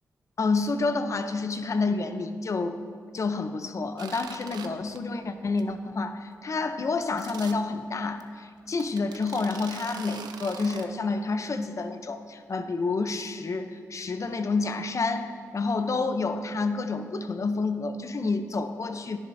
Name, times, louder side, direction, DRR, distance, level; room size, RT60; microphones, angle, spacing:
voice 1, 0.4-2.8 3.1-19.2, left 3 dB, 50° left, 9 dB, 0.7 m, -29 dB
sound 1, 4.0-4.7 4.9-5.2 5.6-5.7 6.0-6.1 7.2-7.5 8.2-8.3 8.8-10.9, right 7 dB, 85° right, 0.5 m, -42 dB
10.5 x 10.0 x 2.7 m, 2.2 s
cardioid pair, 55°, 7 cm